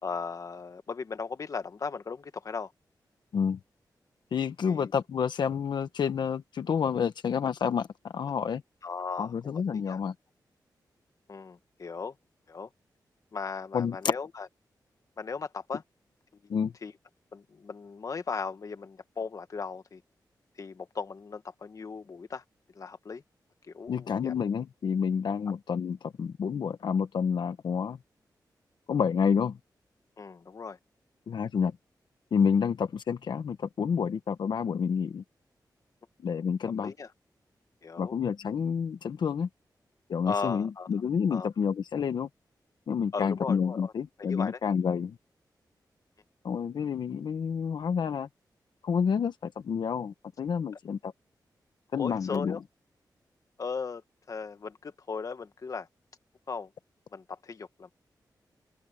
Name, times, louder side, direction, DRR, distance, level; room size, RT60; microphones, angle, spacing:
voice 1, 0.0-2.7 4.7-4.9 8.8-10.0 11.3-12.1 12.5-12.7 13.3-14.5 15.2-15.8 16.8-16.9 17.3-20.0 20.6-22.4 22.7-23.2 23.7-24.3 30.2-30.8 36.8-37.1 37.8-38.2 40.2-40.9 41.3-41.5 43.1-43.9 44.2-44.6 52.0-52.6 53.6-54.0 54.3-55.9 56.5-56.7 57.1-57.9, left 5 dB, 50° left, 1.4 m, -37 dB
voice 2, 4.3-8.6 9.2-10.1 13.7-14.0 16.5-16.7 23.9-28.0 28.9-29.6 31.3-31.7 32.3-35.2 36.2-36.9 38.0-39.5 40.1-42.3 42.9-45.2 46.4-48.3 48.8-51.1 51.9-52.6, left 6 dB, 85° left, 1.3 m, -29 dB
wide cardioid pair, 130°, 7 cm